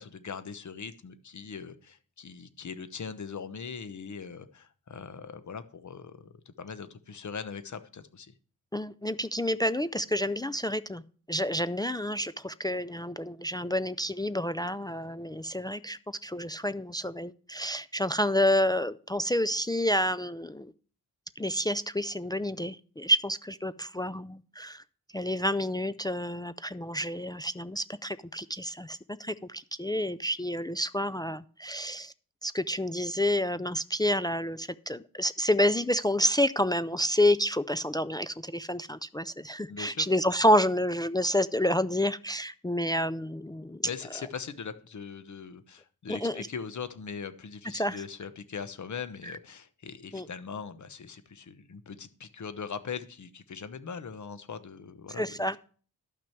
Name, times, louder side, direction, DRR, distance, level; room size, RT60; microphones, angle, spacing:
voice 1, 0.0-8.3 39.7-40.1 43.8-55.2, left 6 dB, 50° left, 12 dB, 1.0 m, -40 dB
voice 2, 8.7-11.0 11.3-20.7 21.4-24.8 25.1-32.1 32.4-43.8 46.1-46.5 47.7-48.0 49.2-49.3 50.1-50.3 55.2-55.6, equal, 10° left, 13 dB, 0.3 m, -29 dB
12.0 x 6.0 x 4.5 m, 0.42 s
cardioid pair, 85°, 37 cm